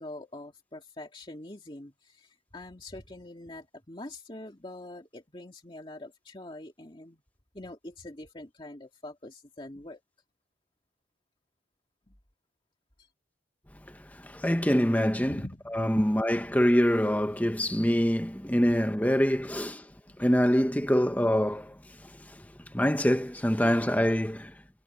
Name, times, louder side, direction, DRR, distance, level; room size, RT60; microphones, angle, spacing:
voice 1, 0.0-7.2 7.5-10.0 12.1-12.2 13.0-13.1 15.2-16.1 16.4-16.5 20.1-20.2, left 1 dB, 30° left, 2.2 m, -44 dB
voice 2, 13.9-15.4 15.7-19.9 20.2-24.6, equal, 10° left, 1.1 m, -25 dB
head